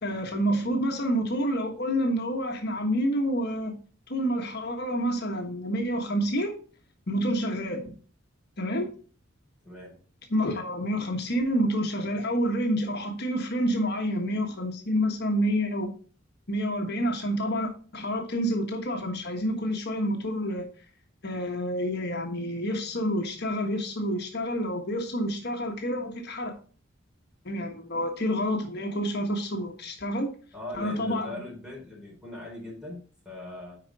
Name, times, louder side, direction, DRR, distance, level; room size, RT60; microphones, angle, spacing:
voice 1, 0.0-3.8 4.1-6.5 7.1-7.8 8.6-8.9 10.3-15.9 16.5-20.7 21.2-26.5 27.4-30.3 30.7-31.4, equal, 55° left, 3 dB, 1.4 m, -28 dB
voice 2, 9.6-10.0 30.5-33.8, left 2 dB, 5° right, -5 dB, 4.2 m, -40 dB
9.1 x 5.1 x 4.1 m, 0.39 s
head